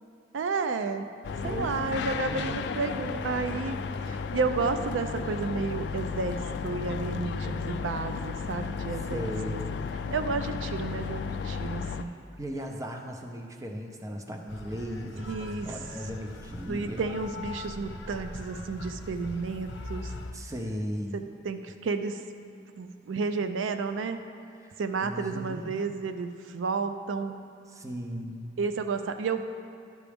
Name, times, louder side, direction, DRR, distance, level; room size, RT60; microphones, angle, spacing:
voice 1, 0.3-1.1 1.4-3.8 4.1-9.3 10.1-12.1 15.2-15.7 16.7-20.1 21.1-22.2 22.8-24.2 24.8-27.4 28.6-29.4, right 4 dB, 90° right, 8 dB, 0.4 m, -31 dB
sound 1, 1.2-12.0, left 5 dB, 60° left, 0.3 m, -34 dB
voice 2, 1.4-2.6 9.1-9.8 11.9-17.1 20.3-21.3 24.6-25.8 27.7-28.5, equal, 15° right, 3 dB, 0.5 m, -37 dB
sound 2, 14.5-20.3, left 2 dB, 90° left, 0.8 m, -41 dB
11.0 x 6.0 x 3.4 m, 2.3 s
head